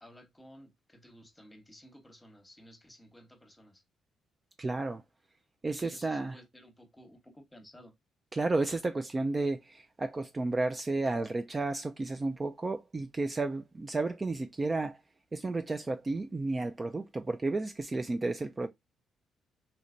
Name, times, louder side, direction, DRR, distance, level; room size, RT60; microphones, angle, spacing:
voice 1, 0.0-3.8 5.8-7.9, equal, 10° left, 1.0 m, -55 dB
voice 2, 4.6-5.0 5.6-6.4 8.3-15.0 15.3-18.7, right 3 dB, 25° right, 0.3 m, -32 dB
3.2 x 2.8 x 2.5 m
cardioid pair, 90°, 0 cm